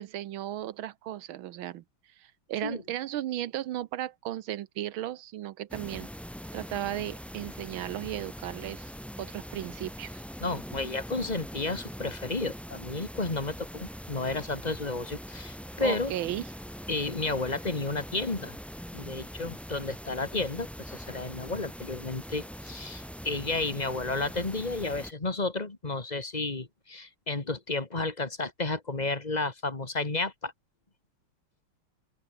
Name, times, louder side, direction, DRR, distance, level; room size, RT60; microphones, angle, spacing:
voice 1, 0.0-1.8 2.2-6.1 6.5-8.9 9.2-10.2 15.8-16.4, right 13 dB, 75° right, 1.5 m, -35 dB
sound 1, 5.7-25.1, equal, ahead, 4.1 m, -42 dB
voice 2, 10.4-16.1 16.9-18.6 18.9-30.5, left 3 dB, 20° left, 2.1 m, -32 dB
open air
omnidirectional pair, 2.4 m